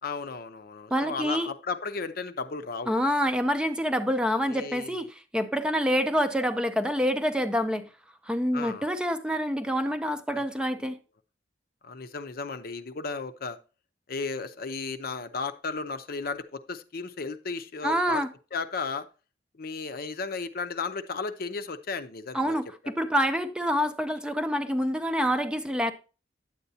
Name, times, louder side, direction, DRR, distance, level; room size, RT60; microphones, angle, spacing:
voice 1, 0.0-3.0 4.5-5.0 8.5-8.9 10.3-10.4 10.8-10.9 11.8-13.6 14.1-18.2 18.5-19.1 19.6-22.5, left 4 dB, 55° left, 0.7 m, -34 dB
voice 2, 0.9-1.5 2.9-7.9 8.3-11.0 17.8-18.3 22.3-25.9, equal, 5° right, 0.5 m, -27 dB
9.3 x 8.0 x 2.7 m
head